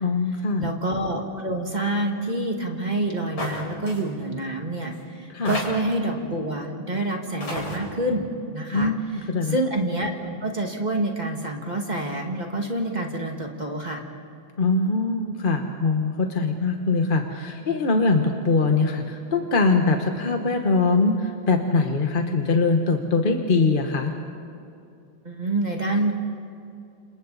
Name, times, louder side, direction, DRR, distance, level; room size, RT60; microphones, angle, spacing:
voice 1, 0.0-0.7 5.3-5.5 8.7-9.6 14.6-24.1, left 3 dB, 35° left, 3 dB, 1.0 m, -22 dB
voice 2, 0.6-8.9 9.4-14.0 25.2-26.2, right 1 dB, 20° right, 1 dB, 1.9 m, -27 dB
sound 1, 3.4-3.6 3.9-4.0 4.9-5.0 5.4-6.0 7.0-7.1 7.4-7.8, left 2 dB, 80° left, 5.6 m, -30 dB
30.0 x 27.0 x 4.1 m, 2.5 s
omnidirectional pair, 2.1 m